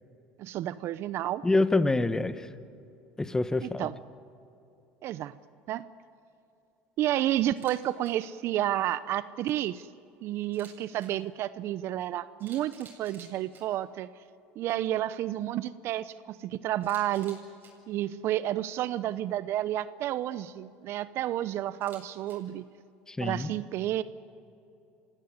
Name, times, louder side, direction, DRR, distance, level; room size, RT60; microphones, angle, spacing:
voice 1, 0.4-1.4 3.6-3.9 5.0-5.3 5.7-5.8 7.0-9.9 10.2-14.1 14.6-17.4 17.9-22.7 23.2-24.0, right 13 dB, 55° right, 15 dB, 0.7 m, -31 dB
voice 2, 1.4-2.5 3.2-3.9 23.1-23.5, left 2 dB, 10° left, 13 dB, 1.3 m, -26 dB
Camera, 7.5-7.8 8.0-8.1 10.4-11.1 12.0-12.1 12.4-13.6 16.8-17.7 21.7-22.3, right 5 dB, 40° right, 7.9 m, -53 dB
27.0 x 16.5 x 9.6 m, 2.7 s
supercardioid pair, 90°, 5 cm